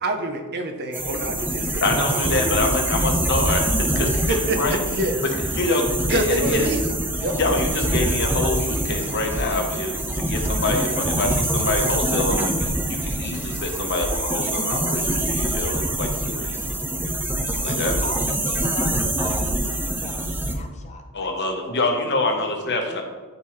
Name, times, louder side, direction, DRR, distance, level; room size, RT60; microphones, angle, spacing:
voice 1, 0.0-2.2 4.3-5.2 6.1-6.8 7.2-7.4, right 2 dB, 45° right, 5 dB, 0.8 m, -27 dB
sound 1, 0.9-20.6, right 1 dB, 10° right, 0.6 m, -25 dB
voice 2, 1.8-4.8 5.5-6.7 7.4-16.6 17.6-18.0 21.1-23.0, left 2 dB, 50° left, 3 dB, 1.1 m, -26 dB
voice 3, 17.6-23.0, left 2 dB, 30° left, 5 dB, 0.7 m, -38 dB
12.0 x 4.6 x 3.2 m, 1.4 s
head